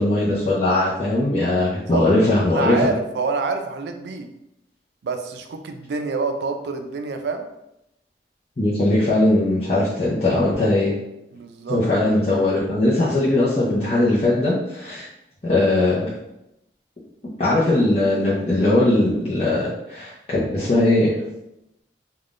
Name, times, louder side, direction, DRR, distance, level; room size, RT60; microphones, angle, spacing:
voice 1, 0.0-2.9 8.6-10.9 11.7-15.1 15.4-16.1 17.4-21.2, left 2 dB, 35° left, -9 dB, 0.6 m, -20 dB
voice 2, 2.5-4.3 5.0-7.5 11.3-11.8, right 4 dB, 70° right, 6 dB, 0.3 m, -27 dB
3.5 x 2.2 x 2.4 m, 0.85 s
head